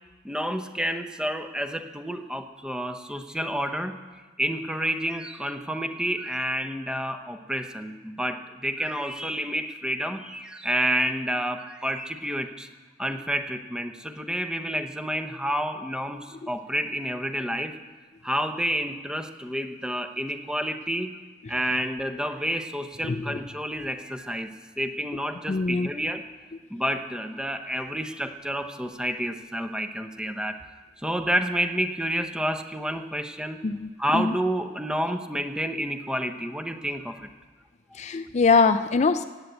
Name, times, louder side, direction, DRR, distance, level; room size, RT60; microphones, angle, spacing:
voice 1, 0.2-4.0 4.4-12.7 13.0-17.8 18.2-21.2 21.5-26.2 26.7-30.6 31.0-33.6 34.0-37.2, equal, 5° right, 7 dB, 0.8 m, -29 dB
voice 2, 23.0-23.4 25.5-25.9 33.6-34.3 37.9-39.2, left 4 dB, 40° left, 10 dB, 0.4 m, -23 dB
16.5 x 9.1 x 8.0 m, 1.3 s
head